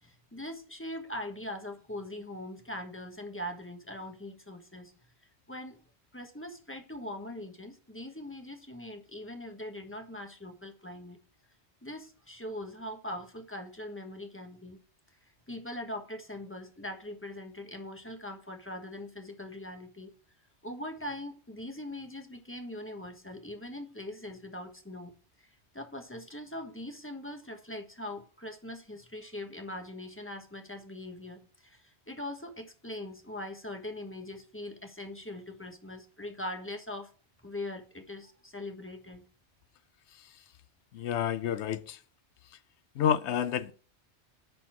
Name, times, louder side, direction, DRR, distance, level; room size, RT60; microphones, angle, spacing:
voice 1, 0.0-4.9 5.5-5.8 6.1-11.2 11.8-14.8 15.5-20.1 20.6-25.1 25.4-37.1 37.4-39.2, left 1 dB, 10° left, 1.3 m, -41 dB
voice 2, 40.9-42.0 43.0-43.7, left 9 dB, 85° left, 0.9 m, -29 dB
11.0 x 4.2 x 5.8 m
omnidirectional pair, 1.1 m